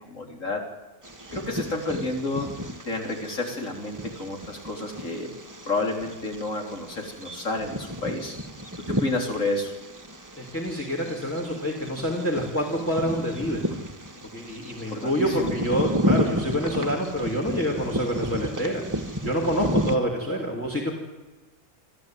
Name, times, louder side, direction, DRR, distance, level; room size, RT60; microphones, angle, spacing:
voice 1, 0.1-0.7 1.3-2.5 2.8-5.3 5.7-8.3 8.9-9.7 14.9-15.5, left 2 dB, 65° left, 2 dB, 4.0 m, -30 dB
Bird vocalization bird call bird song, 1.0-20.0, equal, 15° right, 1.3 m, -32 dB
voice 2, 10.4-13.6 14.3-18.8 19.2-20.9, equal, 10° left, 1 dB, 2.9 m, -27 dB
27.5 x 14.0 x 9.2 m, 1.2 s
omnidirectional pair, 1.4 m